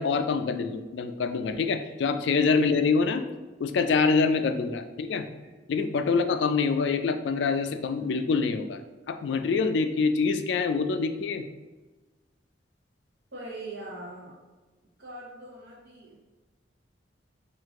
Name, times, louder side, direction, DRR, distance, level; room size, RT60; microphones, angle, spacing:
voice 1, 0.0-3.2 3.6-5.3 5.7-8.8 9.1-11.4, left 4 dB, 70° left, 9 dB, 0.3 m, -25 dB
voice 2, 13.3-14.3 15.0-16.2, right 2 dB, 60° right, -6 dB, 0.8 m, -41 dB
4.6 x 2.5 x 3.6 m, 1.2 s
head